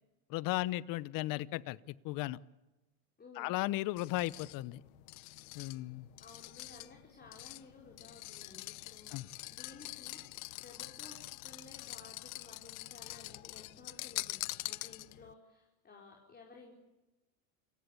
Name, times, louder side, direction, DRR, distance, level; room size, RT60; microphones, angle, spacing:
voice 1, 0.3-1.8 2.0-2.4 3.4-4.8 5.5-6.1 9.1-9.3, left 17 dB, 50° left, 0.9 m, -35 dB
voice 2, 3.2-3.5 6.2-10.2 10.6-16.8, left 3 dB, 25° left, 4.8 m, -56 dB
sound 1, 4.0-15.3, left 19 dB, 80° left, 0.9 m, -45 dB
28.5 x 22.5 x 8.4 m
supercardioid pair, 110°, 41 cm